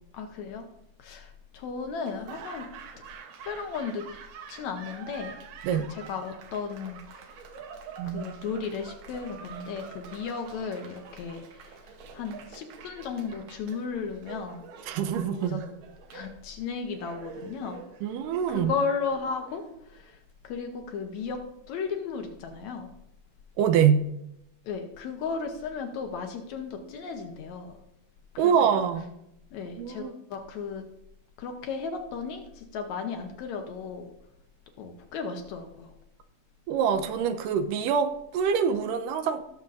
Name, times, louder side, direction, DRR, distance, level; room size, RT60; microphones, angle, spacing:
voice 1, 0.1-0.7 1.0-2.7 3.4-4.0 4.5-5.4 5.9-7.3 8.0-14.7 15.3-15.6 16.1-17.8 18.5-20.2 20.4-21.4 21.7-22.9 24.6-27.8 28.4-28.7 29.5-30.8 31.4-34.1 34.8-35.9, left 5 dB, 70° left, 4 dB, 2.0 m, -35 dB
Laughter / Applause, 2.0-20.1, right 7 dB, 70° right, 2.1 m, -47 dB
voice 2, 8.0-8.3 14.9-15.6 18.0-18.7 23.6-24.1 28.4-29.1 29.8-30.1 36.7-39.4, right 7 dB, 85° right, 9 dB, 2.3 m, -25 dB
17.5 x 7.1 x 2.5 m, 0.81 s
omnidirectional pair, 3.8 m